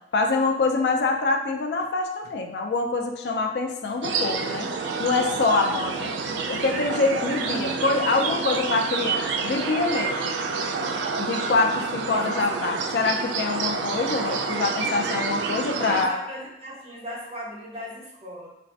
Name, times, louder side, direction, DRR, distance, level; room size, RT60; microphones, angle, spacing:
voice 1, 0.1-4.7 5.0-6.1 6.5-10.4 11.2-16.1, left 3 dB, 65° left, 3 dB, 0.4 m, -25 dB
sound 1, 4.0-16.1, right 4 dB, 80° right, 0.3 m, -28 dB
voice 2, 15.8-18.5, equal, 35° right, -4 dB, 0.8 m, -38 dB
3.9 x 2.1 x 2.7 m, 0.85 s
head